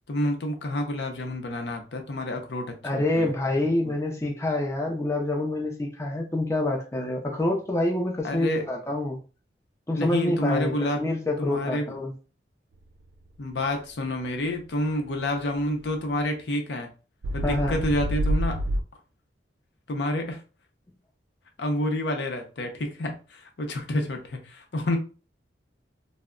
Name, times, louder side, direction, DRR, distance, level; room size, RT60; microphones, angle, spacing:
voice 1, 0.1-3.4 3.8-3.9 8.2-8.7 9.9-11.1 11.4-12.0 13.4-16.9 17.3-18.6 19.9-20.4 21.6-25.0, left 1 dB, 70° left, 4 dB, 0.6 m, -29 dB
voice 2, 2.8-9.2 9.9-12.1 17.4-17.8, left 1 dB, 15° left, 0 dB, 0.5 m, -27 dB
sound 1, 15.8-15.9 17.2-18.8, equal, 85° right, 0.3 m, -27 dB
2.2 x 2.1 x 3.6 m, 0.35 s
head